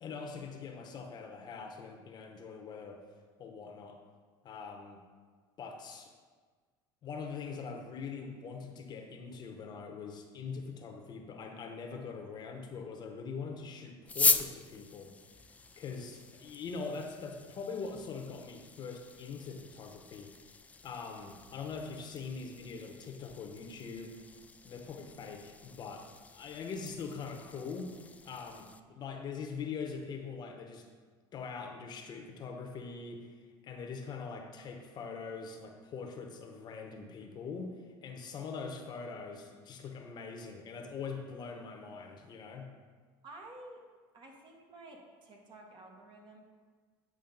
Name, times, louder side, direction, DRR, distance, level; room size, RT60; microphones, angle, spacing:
voice 1, 0.0-3.0 3.4-4.0 4.4-5.0 5.6-6.1 7.0-15.1 15.8-20.3 20.8-24.2 24.6-26.1 26.3-27.9 28.2-30.9 31.3-33.3 33.6-37.7 38.0-42.7, left 5 dB, 40° left, 3 dB, 0.9 m, -42 dB
sound 1, 14.0-28.8, left 4 dB, 10° left, 0.3 m, -39 dB
voice 2, 43.2-43.8 44.1-46.4, right 2 dB, 40° right, 1 dB, 1.3 m, -51 dB
8.7 x 5.0 x 3.9 m, 1.5 s
supercardioid pair, 115°, 11 cm